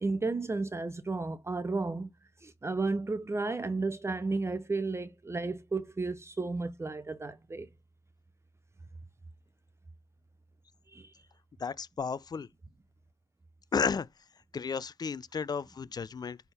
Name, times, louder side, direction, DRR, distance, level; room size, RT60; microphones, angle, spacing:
voice 1, 0.0-2.1 2.4-7.7 10.9-11.1, right 3 dB, 20° right, 0.7 m, -33 dB
voice 2, 11.6-12.5 13.7-14.1 14.5-16.4, left 5 dB, 35° left, 0.4 m, -33 dB
10.5 x 3.5 x 5.5 m
cardioid pair, 80°, 12 cm